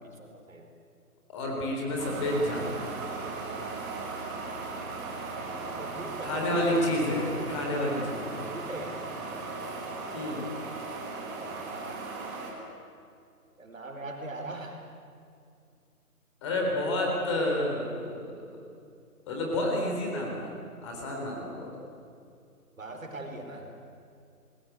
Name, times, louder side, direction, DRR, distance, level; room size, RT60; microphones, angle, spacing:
voice 1, 0.0-0.7 3.4-3.5 5.0-5.2 5.5-6.6 7.7-8.0 8.5-9.0 11.3-12.0 13.6-14.9 22.8-23.8, right 2 dB, 55° right, 3 dB, 4.6 m, -42 dB
voice 2, 1.3-2.8 3.6-3.7 6.2-8.5 10.1-10.4 16.4-18.4 19.3-20.5 20.8-21.7, left 1 dB, 20° left, -1 dB, 4.1 m, -29 dB
sound 1, 2.0-12.5, right 3 dB, 10° right, 1.8 m, -37 dB
28.5 x 21.0 x 8.3 m, 2.5 s
figure-of-eight pair, 150°, 46 cm